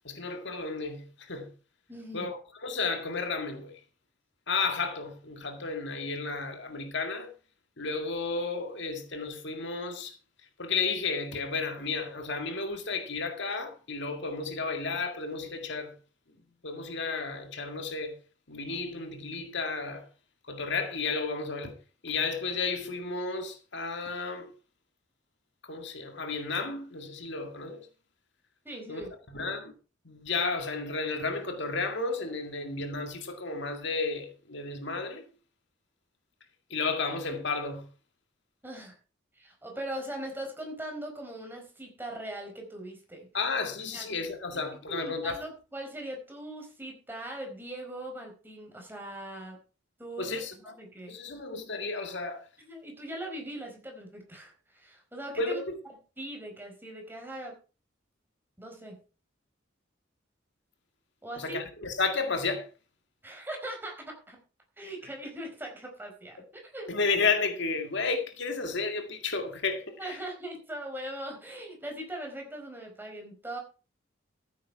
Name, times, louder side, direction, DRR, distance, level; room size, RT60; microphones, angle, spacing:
voice 1, 0.0-1.5 2.1-3.8 4.5-7.3 7.8-10.1 10.6-15.9 16.6-18.2 18.5-20.1 20.5-21.7 22.0-24.5 25.7-27.9 28.9-29.7 30.1-35.2 36.7-37.9 43.3-45.4 50.2-50.5 51.1-52.5 55.4-55.8 61.4-62.7 66.9-70.2, left 4 dB, 65° left, 2.0 m, -32 dB
voice 2, 1.9-2.3 28.6-29.1 38.6-38.9 39.3-43.3 43.9-44.1 44.5-44.6 44.9-49.6 50.0-51.1 52.7-55.6 56.2-57.6 58.6-59.0 61.2-61.6 63.2-64.4 64.8-66.9 70.0-73.6, right 1 dB, 10° right, 4.6 m, -40 dB
14.0 x 8.7 x 4.6 m
head